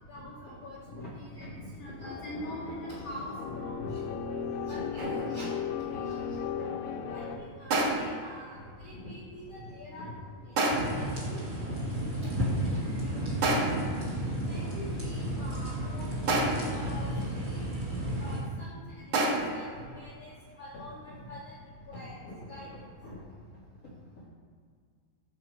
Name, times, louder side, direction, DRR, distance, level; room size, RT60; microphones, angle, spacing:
voice 1, 0.1-4.1 4.4-6.7 6.9-10.2 10.4-10.6 10.8-11.4 12.0-12.1 12.7-12.9 13.9-14.0 14.4-17.6 18.2-21.6 21.9-23.2, left 1 dB, 50° left, -7 dB, 2.0 m, -43 dB
sound 1, 2.0-7.4, left 7 dB, 90° left, 2.0 m, -36 dB
sound 2, 5.0-5.4 7.7-8.3 10.6-11.1 13.4-14.0 16.3-16.8 19.1-19.7, right 2 dB, 65° right, 1.6 m, -28 dB
sound 3, 10.7-18.4, right 1 dB, 20° right, 2.0 m, -33 dB
13.0 x 5.1 x 4.8 m, 2.1 s
omnidirectional pair, 4.8 m